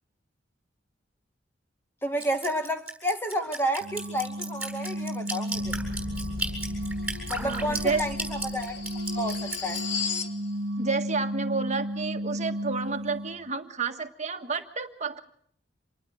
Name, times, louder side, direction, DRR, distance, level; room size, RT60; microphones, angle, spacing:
voice 1, 2.0-5.8 7.3-8.8 9.1-9.8, equal, 10° left, 1.6 m, -31 dB
Drip, 2.2-9.8, right 2 dB, 5° right, 7.9 m, -34 dB
sound 1, 3.8-13.5, equal, 85° right, 1.0 m, -34 dB
sound 2, 5.5-10.4, left 5 dB, 90° left, 1.7 m, -36 dB
voice 2, 7.4-8.0 10.8-15.2, right 4 dB, 40° right, 1.6 m, -30 dB
26.5 x 20.0 x 6.4 m
head